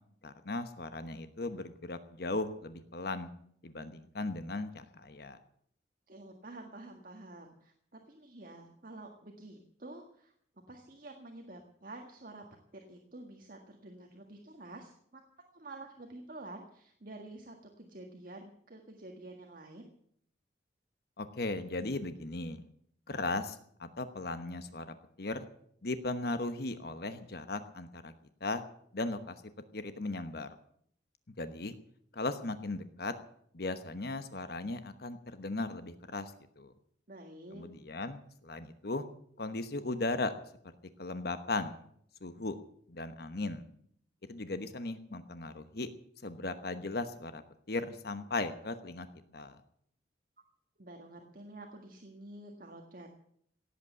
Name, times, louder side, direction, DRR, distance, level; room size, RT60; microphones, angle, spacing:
voice 1, 0.2-3.3 3.6-5.4 21.2-22.6 23.1-25.4 25.8-28.1 28.4-28.6 28.9-29.4 29.7-30.5 31.4-31.7 32.1-33.1 33.5-36.7 37.5-39.0 39.4-40.3 41.0-41.8 42.2-42.6 42.9-43.6 44.3-45.9 46.2-47.4 47.7-49.1 49.3-49.6, left 2 dB, 60° left, 10 dB, 1.1 m, -37 dB
voice 2, 6.1-10.3 10.7-12.5 12.7-15.2 15.5-19.9 37.1-37.7 50.8-53.1, right 2 dB, 50° right, 3 dB, 1.7 m, -49 dB
17.5 x 8.4 x 9.2 m, 0.67 s
head